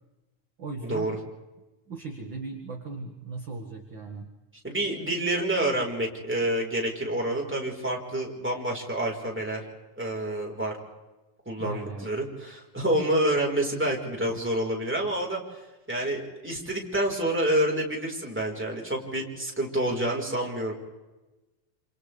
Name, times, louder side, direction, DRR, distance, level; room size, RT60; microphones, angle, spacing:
voice 1, 0.6-1.2 1.9-4.3 11.6-12.1 14.3-14.4, right 3 dB, 40° right, 2 dB, 2.2 m, -37 dB
voice 2, 4.6-9.6 10.0-10.7 11.5-15.4 15.9-20.7, right 1 dB, 5° right, -2 dB, 4.0 m, -28 dB
28.5 x 27.5 x 3.4 m, 1.1 s
omnidirectional pair, 3.9 m